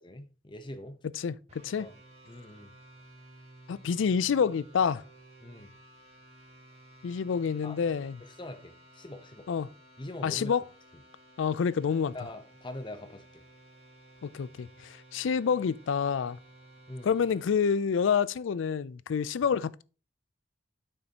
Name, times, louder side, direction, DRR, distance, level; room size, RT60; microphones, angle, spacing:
voice 1, 0.0-1.0 1.8-1.9 2.3-2.7 5.4-5.7 7.6-7.8 8.2-9.5 10.0-10.6 12.1-13.4 16.9-17.1, left 1 dB, 25° left, 0.9 m, -43 dB
voice 2, 1.2-1.9 3.7-5.0 7.0-8.2 9.5-9.7 10.2-10.6 11.4-12.2 14.2-16.4 17.0-19.8, left 6 dB, 85° left, 0.4 m, -28 dB
sound 1, 1.5-17.5, right 1 dB, 35° right, 2.6 m, -55 dB
8.7 x 6.5 x 2.9 m
head